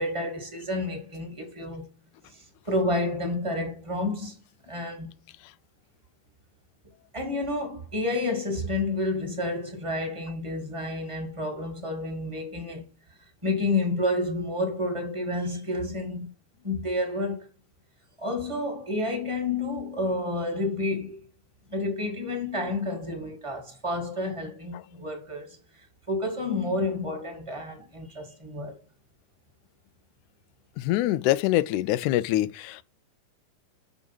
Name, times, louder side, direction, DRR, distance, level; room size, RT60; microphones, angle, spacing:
voice 1, 0.0-1.9 2.3-4.4 4.6-5.1 7.1-12.8 13.4-16.3 16.6-17.5 18.2-21.2 21.7-28.7, left 2 dB, 10° right, 2.0 m, -30 dB
voice 2, 30.8-32.8, left 15 dB, 85° left, 2.0 m, -24 dB
7.1 x 5.1 x 6.0 m
omnidirectional pair, 3.5 m